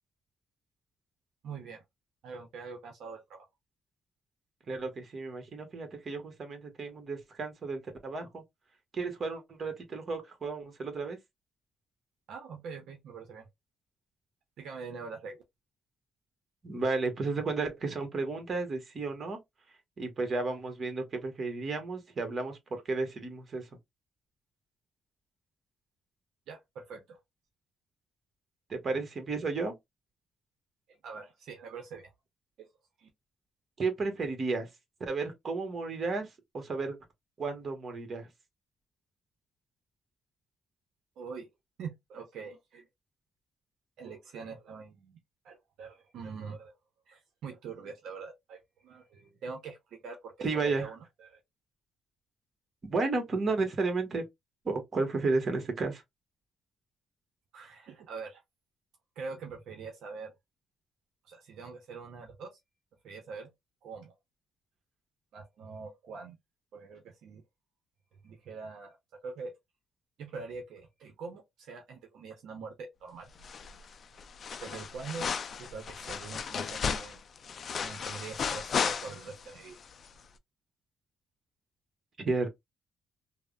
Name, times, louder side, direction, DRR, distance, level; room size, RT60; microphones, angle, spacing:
voice 1, 1.4-1.8 2.2-3.5 12.3-13.5 14.6-15.4 26.5-27.2 30.9-32.1 32.6-32.7 33.0-33.1 41.2-41.5 41.8-42.9 44.0-45.2 45.4-46.7 47.1-49.8 50.0-51.4 57.5-58.4 59.2-60.3 61.3-62.6 63.0-63.5 63.8-64.1 65.3-66.4 66.7-67.4 68.2-69.5 70.2-73.3 74.6-75.3 75.6-77.2 77.8-79.8, right 5 dB, 80° right, 0.7 m, -44 dB
voice 2, 4.7-8.4 8.9-11.2 16.6-19.4 20.0-23.6 28.7-29.7 33.8-34.7 35.0-36.3 36.5-37.0 37.4-38.3 50.4-50.9 52.8-54.2 54.6-56.0 82.2-82.5, right 3 dB, 45° right, 1.2 m, -33 dB
sound 1, 73.4-73.9 74.2-79.5 79.8-79.9, left 6 dB, 50° left, 0.4 m, -34 dB
3.3 x 2.1 x 2.4 m
cardioid pair, 90°, 0 cm